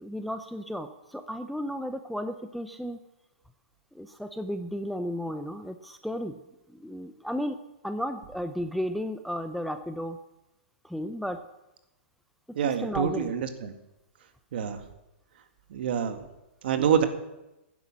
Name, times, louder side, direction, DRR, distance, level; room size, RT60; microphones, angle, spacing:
voice 1, 0.0-3.0 3.9-6.4 6.8-7.6 7.8-10.2 10.8-11.4 12.6-13.3, equal, ahead, 7 dB, 0.5 m, -33 dB
voice 2, 12.6-13.7 14.5-14.8 15.7-16.2 16.6-17.1, right 8 dB, 55° right, 8 dB, 2.0 m, -26 dB
15.5 x 10.0 x 7.4 m, 0.95 s
hypercardioid pair, 165°, 7 cm